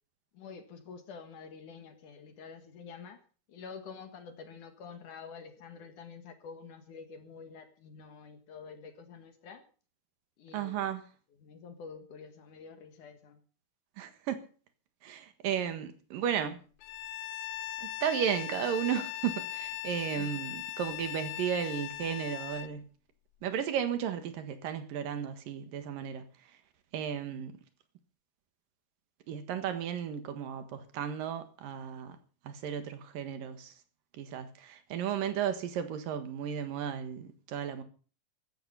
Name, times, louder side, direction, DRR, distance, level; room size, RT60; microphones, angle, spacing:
voice 1, 0.3-3.2 3.5-9.6 10.4-10.9 11.4-13.4 20.1-20.3, left 5 dB, 60° left, 2.9 m, -48 dB
voice 2, 10.5-11.0 14.0-14.4 15.0-16.6 17.8-22.8 23.4-26.2 26.9-27.5 29.3-32.2 32.4-33.7 34.2-37.8, right 9 dB, 70° right, 3.1 m, -34 dB
Bowed string instrument, 16.8-22.7, left 15 dB, 80° left, 2.7 m, -39 dB
15.5 x 12.5 x 5.5 m
omnidirectional pair, 4.2 m